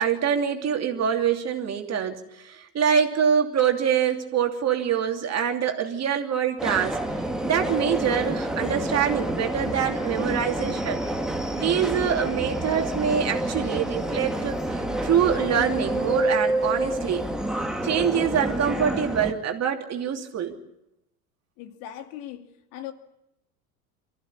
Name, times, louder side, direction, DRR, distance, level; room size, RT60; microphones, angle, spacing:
voice 1, 0.0-7.0 7.4-11.0 11.5-17.2 17.8-20.5, right 8 dB, 35° right, 2.9 m, -25 dB
Subway metro underground, 6.6-19.3, right 1 dB, ahead, 2.3 m, -28 dB
voice 2, 21.6-22.9, left 11 dB, 55° left, 2.5 m, -39 dB
24.5 x 15.0 x 9.9 m
hypercardioid pair, 85°, 45 cm